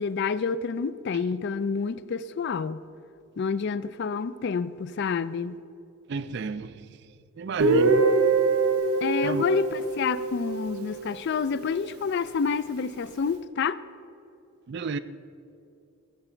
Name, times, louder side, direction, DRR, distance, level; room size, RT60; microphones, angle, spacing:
voice 1, 0.0-2.8 3.4-5.6 9.0-13.8, left 5 dB, 50° left, 0.3 m, -28 dB
voice 2, 6.1-6.9 7.4-8.1 9.2-9.4 14.7-15.0, right 5 dB, 50° right, 0.4 m, -32 dB
Guitar, 7.6-11.4, right 3 dB, 90° right, 0.8 m, -24 dB
15.0 x 7.1 x 4.4 m
head